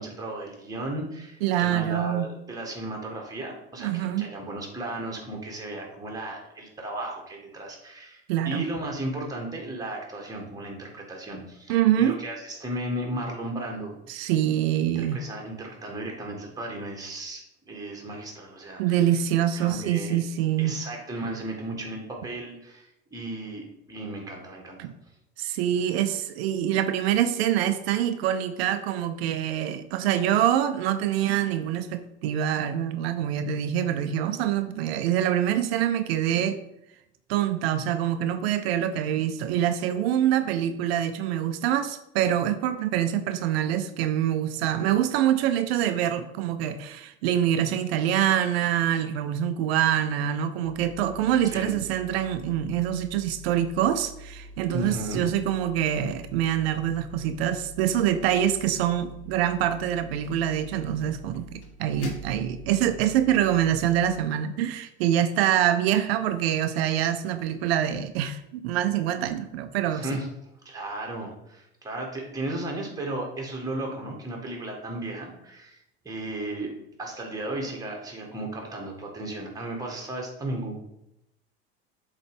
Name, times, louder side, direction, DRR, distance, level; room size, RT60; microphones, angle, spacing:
voice 1, 0.0-14.0 15.1-19.1 19.5-20.2 20.6-24.8 51.4-51.8 54.7-55.2 69.9-70.3 70.7-75.8 76.0-76.7 77.0-80.8, right 1 dB, 10° right, -1 dB, 1.9 m, -35 dB
voice 2, 1.4-2.3 3.8-4.3 8.3-8.6 11.7-12.2 14.1-15.2 18.8-20.7 24.8-24.9 25.4-36.6 37.3-70.1, right 11 dB, 65° right, 10 dB, 0.6 m, -25 dB
sound 1, 50.6-64.2, equal, 60° left, 1.4 m, -45 dB
7.7 x 3.3 x 5.1 m, 0.85 s
hypercardioid pair, 70°, 33 cm